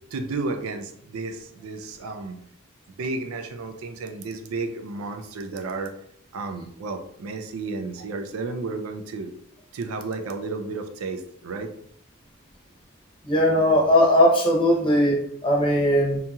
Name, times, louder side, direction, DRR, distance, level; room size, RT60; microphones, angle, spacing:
voice 1, 0.1-2.4 3.0-5.9 6.3-9.3 9.7-11.7, right 3 dB, 85° right, 6 dB, 0.4 m, -32 dB
voice 2, 13.3-16.2, equal, 25° left, -3 dB, 0.7 m, -19 dB
2.8 x 2.8 x 2.3 m, 0.68 s
head